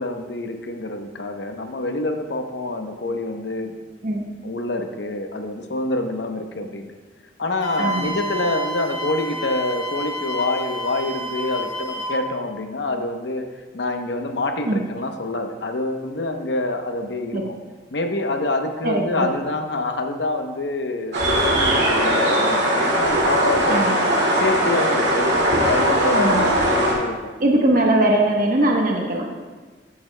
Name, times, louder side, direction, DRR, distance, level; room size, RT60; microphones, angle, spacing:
voice 1, 0.0-3.8 4.4-6.9 7.4-13.5 13.7-17.5 17.9-24.1 24.4-25.3 25.6-27.3, left 2 dB, 70° left, 5 dB, 0.8 m, -26 dB
Wind instrument woodwind instrument, 7.6-12.3, right 1 dB, 20° left, 1.4 m, -30 dB
voice 2, 7.8-8.2 14.7-14.8 17.3-17.4 18.8-19.3 23.7-24.0 26.1-26.5 27.4-29.4, right 1 dB, 50° right, 0 dB, 1.0 m, -20 dB
sound 1, 21.1-26.9, right 1 dB, 70° right, 2.3 m, -19 dB
13.5 x 8.5 x 2.2 m, 1.3 s
head